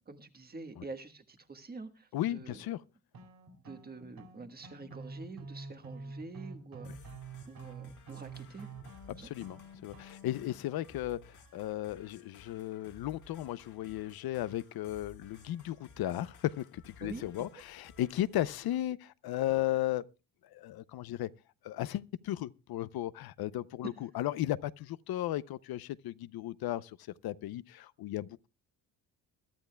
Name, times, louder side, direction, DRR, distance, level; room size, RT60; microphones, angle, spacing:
voice 1, 0.0-2.6 3.6-7.1 7.4-8.7 9.2-9.6 17.0-17.2 17.5-17.6, right 3 dB, 25° right, 1.4 m, -47 dB
voice 2, 2.1-2.8 9.2-20.0 20.5-21.3 21.6-27.0 27.2-28.5, left 14 dB, 75° left, 0.6 m, -35 dB
sound 1, 3.1-10.5, right 3 dB, 65° right, 2.8 m, -47 dB
sound 2, 6.8-18.8, left 4 dB, 50° left, 1.8 m, -57 dB
22.0 x 12.5 x 2.2 m
cardioid pair, 150°, 37 cm